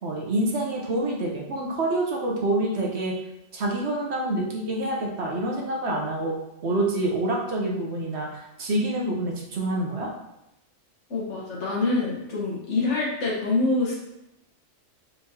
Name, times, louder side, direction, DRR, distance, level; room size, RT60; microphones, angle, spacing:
voice 1, 0.0-3.1 3.5-10.1, right 1 dB, 60° right, -1 dB, 1.0 m, -27 dB
voice 2, 11.1-14.0, left 3 dB, 65° left, -5 dB, 1.4 m, -25 dB
4.1 x 3.6 x 2.7 m, 0.86 s
omnidirectional pair, 1.3 m